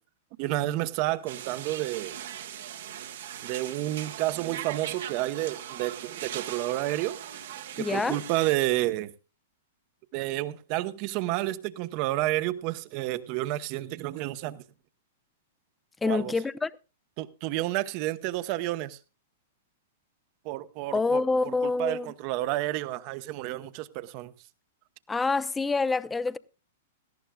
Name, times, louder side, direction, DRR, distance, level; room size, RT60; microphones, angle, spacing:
voice 1, 0.4-2.1 3.4-7.2 7.8-9.1 10.1-14.6 16.0-16.3 17.2-19.0 20.4-24.3, right 16 dB, 45° right, 1.0 m, -30 dB
sound 1, 1.3-8.5, right 10 dB, 70° right, 1.4 m, -40 dB
voice 2, 7.8-8.2 16.0-16.7 20.9-22.1 25.1-26.4, left 3 dB, 10° left, 0.6 m, -26 dB
18.0 x 14.0 x 2.3 m
hypercardioid pair, 120°, 0 cm